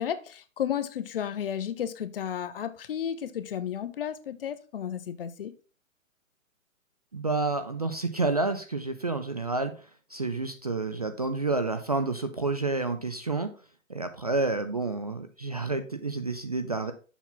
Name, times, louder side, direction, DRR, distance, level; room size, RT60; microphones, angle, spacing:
voice 1, 0.0-5.5, left 9 dB, 45° left, 0.7 m, -33 dB
voice 2, 7.1-9.7 10.1-13.5 13.9-16.9, right 3 dB, 30° right, 0.4 m, -29 dB
7.2 x 5.7 x 3.9 m
hypercardioid pair, 155°, 40 cm